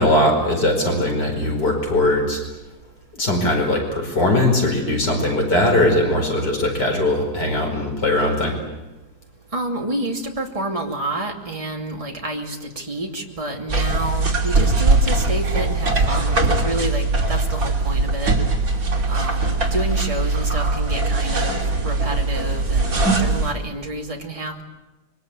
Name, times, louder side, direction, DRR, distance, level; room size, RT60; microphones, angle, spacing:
voice 1, 0.0-2.4 3.1-8.6, left 1 dB, 85° left, 2 dB, 5.6 m, -20 dB
voice 2, 9.5-18.3 19.1-24.6, right 1 dB, 20° right, 1 dB, 2.7 m, -29 dB
sound 1, 13.7-23.5, right 3 dB, 55° right, 3.4 m, -20 dB
26.0 x 23.5 x 8.4 m, 1.0 s
omnidirectional pair, 1.8 m